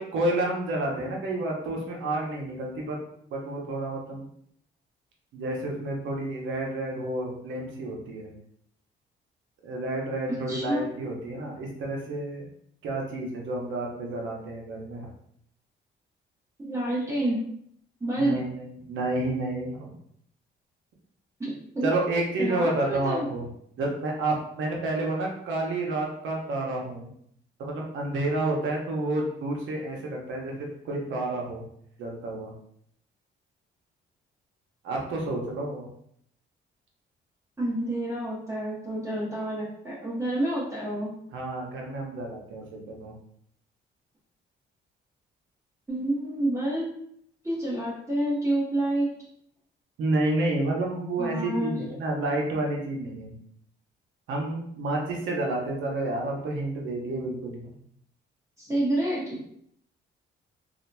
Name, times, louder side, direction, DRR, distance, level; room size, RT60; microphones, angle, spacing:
voice 1, 0.0-3.0 3.3-4.3 5.3-8.3 9.6-12.4 12.8-15.1 18.2-19.9 21.8-23.5 23.8-27.1 27.7-31.7 32.0-32.5 34.8-35.9 41.3-43.1 50.0-53.3 54.3-57.7, right 2 dB, 75° right, -1 dB, 0.8 m, -30 dB
voice 2, 10.5-10.9 16.6-17.4 18.0-18.4 21.4-21.9 22.4-23.3 37.6-41.1 45.9-46.9 47.4-49.1 51.2-51.8 58.6-59.4, right 1 dB, 15° right, -7 dB, 0.8 m, -28 dB
2.7 x 2.5 x 2.2 m, 0.69 s
cardioid pair, 90°, 20 cm